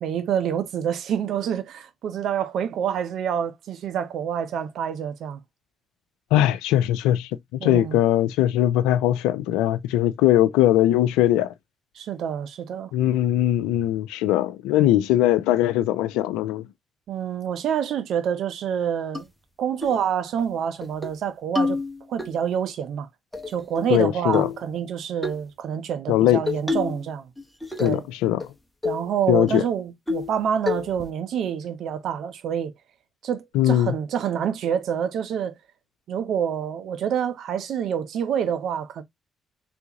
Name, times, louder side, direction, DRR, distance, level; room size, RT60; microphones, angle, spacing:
voice 1, 0.0-5.4 7.6-8.0 12.0-12.9 17.1-19.3 19.6-21.8 22.1-23.1 23.5-27.3 27.8-28.0 28.8-32.7 33.2-35.6 36.1-39.0, right 8 dB, 70° right, 0.6 m, -27 dB
voice 2, 6.3-11.5 12.9-16.6 23.9-24.5 26.1-26.4 27.8-28.5 29.3-29.6 33.5-33.9, left 13 dB, 85° left, 0.3 m, -20 dB
sound 1, 19.2-19.3 19.8-20.0 20.4-20.5 20.8-21.2 21.6-22.3 23.3-24.0 24.3-24.6 25.2-25.4 26.5-27.1 27.4-28.1 28.4-28.5 28.8-29.1 29.5-29.6 30.1-30.4 30.7-31.1, left 3 dB, 5° left, 0.9 m, -28 dB
3.4 x 2.5 x 2.9 m
supercardioid pair, 55°, 0 cm